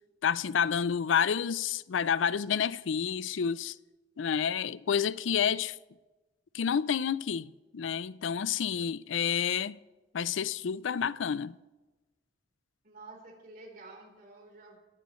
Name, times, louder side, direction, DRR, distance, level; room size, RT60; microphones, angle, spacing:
voice 1, 0.2-3.8 4.2-5.8 6.5-9.8 10.1-11.6, left 7 dB, 85° left, 0.4 m, -29 dB
voice 2, 12.8-14.8, right 2 dB, 50° right, 3.8 m, -50 dB
18.5 x 16.0 x 3.1 m
head